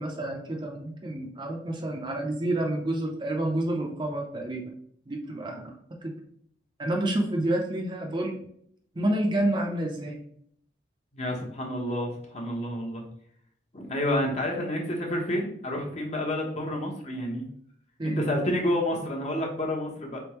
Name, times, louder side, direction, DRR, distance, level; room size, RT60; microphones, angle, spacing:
voice 1, 0.0-4.6 5.1-5.7 6.0-6.1 6.8-8.3 9.0-10.2 18.0-18.2, right 1 dB, 25° right, 1 dB, 0.6 m, -29 dB
voice 2, 11.1-13.0 13.7-17.5 18.0-20.2, left 1 dB, 40° left, 0 dB, 0.9 m, -29 dB
3.7 x 3.4 x 3.0 m, 0.65 s
head